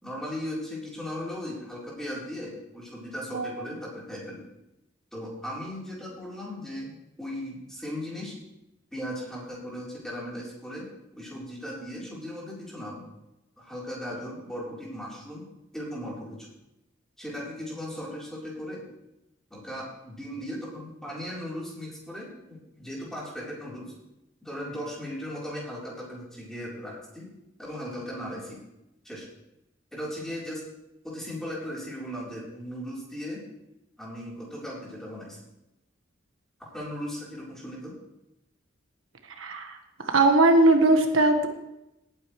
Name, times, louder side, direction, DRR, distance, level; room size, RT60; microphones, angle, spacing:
voice 1, 0.0-4.4 5.1-8.3 8.9-10.9 11.1-13.1 13.6-15.5 15.7-16.5 17.2-18.8 19.5-23.9 24.4-27.3 27.6-28.6 29.0-29.3 29.9-30.7 31.0-33.4 34.0-35.4 36.6-38.0, equal, 5° left, -5 dB, 4.0 m, -37 dB
voice 2, 3.3-3.6 39.4-39.8 40.0-41.5, right 2 dB, 85° right, 5 dB, 1.4 m, -20 dB
18.5 x 9.0 x 3.3 m, 0.89 s
head